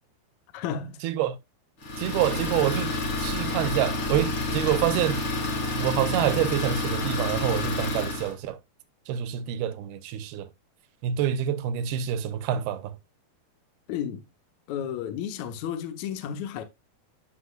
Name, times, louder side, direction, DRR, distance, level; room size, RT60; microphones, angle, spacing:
voice 1, 0.5-1.0 13.9-14.3 14.7-16.6, left 9 dB, 75° left, 1.7 m, -32 dB
voice 2, 1.0-1.4 2.0-5.2 5.8-8.6 9.1-10.5 11.0-12.9, right 10 dB, 80° right, 2.6 m, -27 dB
Idling, 1.8-8.3, left 2 dB, 35° left, 2.4 m, -29 dB
11.5 x 6.0 x 2.4 m
omnidirectional pair, 4.7 m